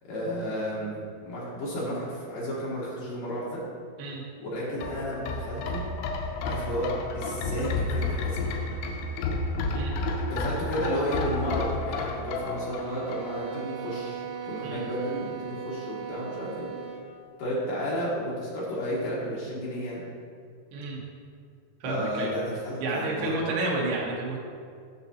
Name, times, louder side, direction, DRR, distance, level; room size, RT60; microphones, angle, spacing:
voice 1, 0.0-3.6 4.4-5.8 6.4-8.5 10.3-16.7 17.4-20.0 21.8-23.4, equal, 75° left, -7 dB, 2.0 m, -32 dB
sound 1, 4.7-13.6 13.9-14.0, left 3 dB, 90° left, 2.5 m, -31 dB
sound 2, 12.4-17.1, right 7 dB, 85° right, 3.4 m, -38 dB
voice 2, 21.8-22.3 22.8-24.4, right 2 dB, 70° right, -3 dB, 3.0 m, -30 dB
10.5 x 6.1 x 2.8 m, 2.2 s
omnidirectional pair, 5.8 m